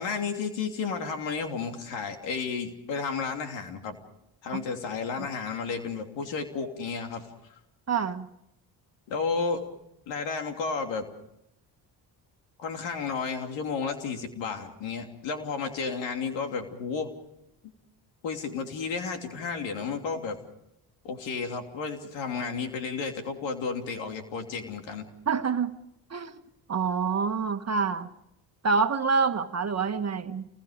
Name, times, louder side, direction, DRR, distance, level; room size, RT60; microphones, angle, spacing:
voice 1, 0.0-4.0 4.4-7.2 9.1-9.6 10.1-11.1 12.6-17.1 18.2-20.4 21.0-25.1, left 5 dB, 90° left, 5 dB, 3.1 m, -32 dB
voice 2, 7.9-8.3 25.3-25.7 26.1-26.4 26.7-28.1 28.6-30.5, right 5 dB, 35° right, 9 dB, 1.5 m, -27 dB
29.0 x 21.0 x 5.1 m, 0.83 s
cardioid pair, 85°, 43 cm